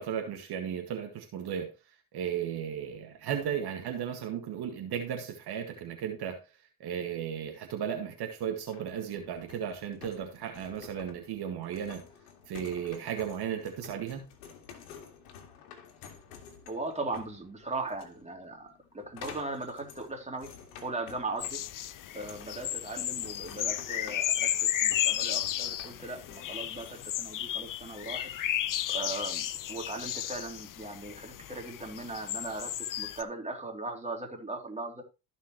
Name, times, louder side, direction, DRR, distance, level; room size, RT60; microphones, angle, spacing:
voice 1, 0.0-6.4 6.8-12.0 12.5-14.2, right 8 dB, 55° right, 4 dB, 1.9 m, -35 dB
sound 1, 8.7-27.1, left 7 dB, 80° left, 2.0 m, -51 dB
voice 2, 16.7-20.5 20.8-21.6 22.1-28.3 28.9-35.0, right 2 dB, 15° right, 2 dB, 3.1 m, -38 dB
sound 2, 21.4-33.2, left 12 dB, 45° left, 0.8 m, -33 dB
15.0 x 5.6 x 3.1 m, 0.28 s
hypercardioid pair, 65°, 45 cm